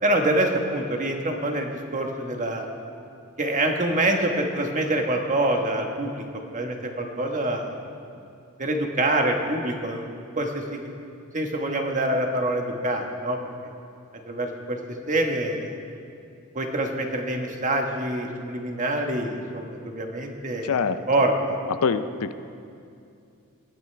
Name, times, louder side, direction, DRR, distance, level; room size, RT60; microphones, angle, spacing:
voice 1, 0.0-2.7 3.4-6.2 6.5-7.8 8.6-10.1 10.4-10.9 11.3-13.4 14.3-14.8 15.1-15.7 16.5-20.7 21.1-21.6, right 1 dB, 35° right, 3 dB, 1.3 m, -25 dB
voice 2, 20.6-21.0 21.7-22.3, left 5 dB, 75° left, 11 dB, 0.5 m, -24 dB
20.5 x 13.0 x 3.4 m, 2.5 s
head